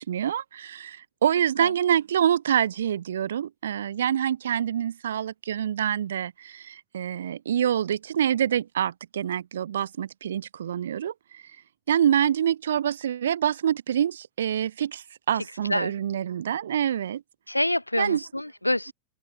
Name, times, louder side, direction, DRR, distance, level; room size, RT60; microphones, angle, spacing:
voice 1, 0.0-11.4 11.9-17.2 18.0-18.2, right 9 dB, 65° right, 0.6 m, -26 dB
voice 2, 17.5-18.9, left 1 dB, 85° left, 0.5 m, -26 dB
open air
figure-of-eight pair, 90°, 0 cm